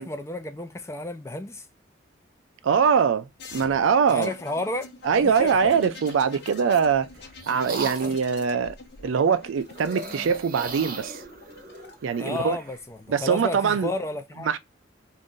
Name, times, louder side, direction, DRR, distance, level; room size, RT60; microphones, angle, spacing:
voice 1, 0.0-1.7 4.1-4.9 5.2-5.6 12.2-14.5, left 2 dB, 15° left, 0.4 m, -32 dB
voice 2, 2.6-4.3 5.0-7.1 7.5-8.8 9.0-11.2 12.0-12.6 13.1-13.9 14.4-14.6, right 6 dB, 85° right, 0.4 m, -23 dB
sound 1, 3.4-11.9 13.1-13.7, left 3 dB, 55° left, 0.6 m, -45 dB
sound 2, 5.6-6.2 6.9-8.3 9.7-12.8, right 3 dB, 45° right, 0.7 m, -37 dB
2.6 x 2.5 x 3.6 m
head